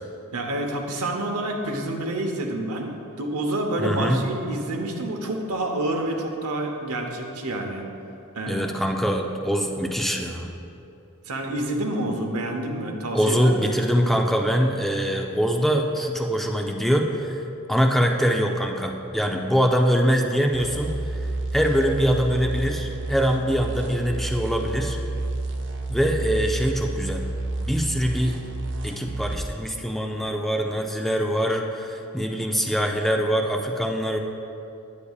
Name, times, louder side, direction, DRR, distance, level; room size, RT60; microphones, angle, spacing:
voice 1, 0.3-2.9 3.2-7.8 8.3-8.7 11.2-13.6, right 1 dB, 90° right, 2 dB, 0.9 m, -28 dB
voice 2, 3.8-4.2 8.5-10.5 13.1-17.4 17.7-21.2 21.5-25.0 25.9-27.3 27.6-28.4 28.8-34.2, equal, ahead, 2 dB, 0.4 m, -23 dB
sound 1, 20.5-29.4, right 2 dB, 55° right, 0.6 m, -30 dB
9.7 x 8.3 x 2.3 m, 2.8 s
head